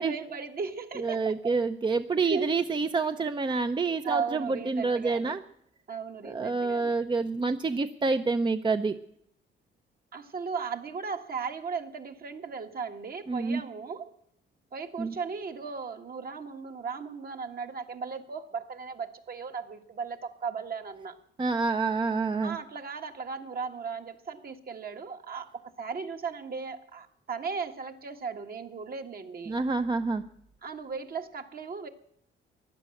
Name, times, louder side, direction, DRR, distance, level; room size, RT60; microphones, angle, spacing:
voice 1, 0.0-1.6 2.2-2.6 4.0-5.3 5.9-7.0 10.1-14.1 14.7-21.2 22.4-29.6 30.6-31.9, right 5 dB, 50° right, 5 dB, 1.7 m, -36 dB
voice 2, 1.0-5.4 6.2-9.0 13.3-13.6 15.0-15.1 21.4-22.6 29.5-30.3, right 4 dB, 25° right, 9 dB, 0.6 m, -28 dB
15.5 x 11.0 x 7.7 m, 0.70 s
cardioid pair, 90°, 20 cm